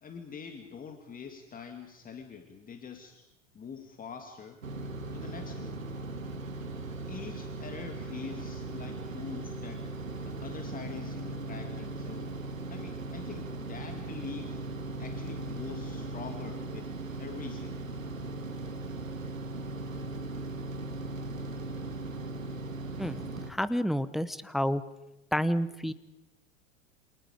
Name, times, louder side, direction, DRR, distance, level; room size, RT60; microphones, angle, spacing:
voice 1, 0.0-3.2 3.5-4.6 5.1-5.9 7.1-9.9 10.2-12.4 12.7-14.7 15.0-17.9, left 6 dB, 20° left, 5 dB, 2.4 m, -44 dB
sound 1, 4.6-23.5, right 2 dB, 80° right, 2.3 m, -38 dB
voice 2, 23.0-24.8 25.3-25.9, equal, ahead, 16 dB, 0.8 m, -30 dB
28.0 x 27.5 x 5.2 m, 0.95 s
figure-of-eight pair, 90°, 39 cm